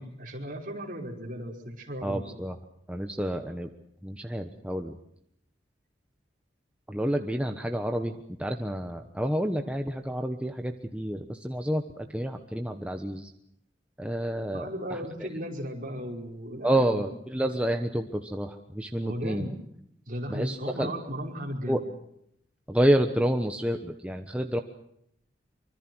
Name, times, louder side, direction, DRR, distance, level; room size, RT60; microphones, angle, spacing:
voice 1, 0.0-2.2 14.5-17.1 19.0-19.6 20.1-21.9, equal, 45° right, 1 dB, 5.2 m, -36 dB
voice 2, 2.0-2.5 2.9-3.7 4.0-5.0 6.9-13.3 14.0-15.0 16.6-19.5 20.3-20.9 21.7-21.8 22.7-24.6, right 1 dB, 5° right, 4 dB, 1.2 m, -29 dB
25.0 x 25.0 x 6.3 m, 0.74 s
head